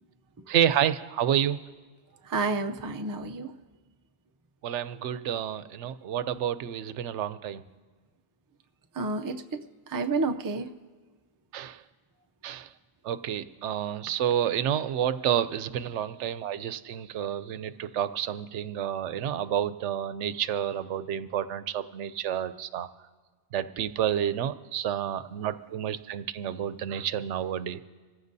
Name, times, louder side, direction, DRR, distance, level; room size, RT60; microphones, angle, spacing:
voice 1, 0.5-1.6 4.6-7.6 11.5-11.8 12.4-12.7 13.0-22.9 23.5-27.8, right 10 dB, 85° right, 13 dB, 0.9 m, -29 dB
voice 2, 2.3-3.5 9.0-9.3 9.9-10.7, right 3 dB, 30° right, 6 dB, 0.3 m, -29 dB
26.0 x 15.0 x 2.7 m, 1.4 s
omnidirectional pair, 1.2 m